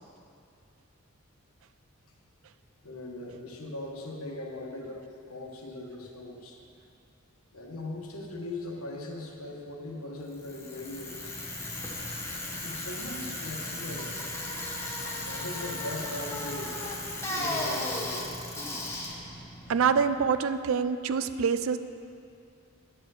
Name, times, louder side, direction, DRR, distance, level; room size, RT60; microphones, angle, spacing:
voice 1, 2.8-6.6 7.5-11.4 12.6-14.1 15.2-16.7 17.3-18.4, left 2 dB, 85° left, 0 dB, 1.1 m, -39 dB
Bicycle, 10.3-20.4, left 1 dB, 10° left, 1.0 m, -36 dB
voice 2, 19.7-21.8, right 6 dB, 70° right, 12 dB, 0.4 m, -25 dB
10.5 x 4.5 x 6.3 m, 2.5 s
head